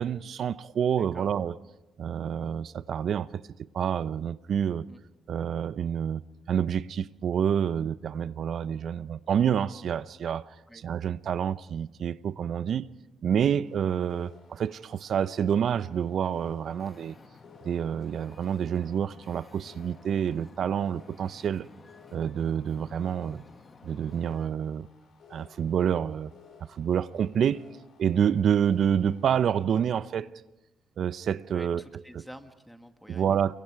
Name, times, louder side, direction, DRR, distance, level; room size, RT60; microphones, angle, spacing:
voice 1, 0.0-1.6 2.0-3.4 3.7-4.9 5.3-12.9 13.2-17.2 17.6-21.7 22.1-23.4 23.8-24.9 25.3-26.3 26.7-27.7 28.0-30.3 31.0-31.8 32.1-32.2 33.1-33.6, right 8 dB, 60° right, 0.6 m, -28 dB
voice 2, 1.0-1.3 4.9-5.0 10.7-10.8 31.5-33.3, equal, ahead, 1.7 m, -48 dB
sound 1, 13.6-29.6, left 6 dB, 65° left, 6.6 m, -57 dB
Wind / Ocean, 16.6-24.5, left 4 dB, 35° left, 1.3 m, -53 dB
29.5 x 23.0 x 4.7 m
cardioid pair, 90°, 0 cm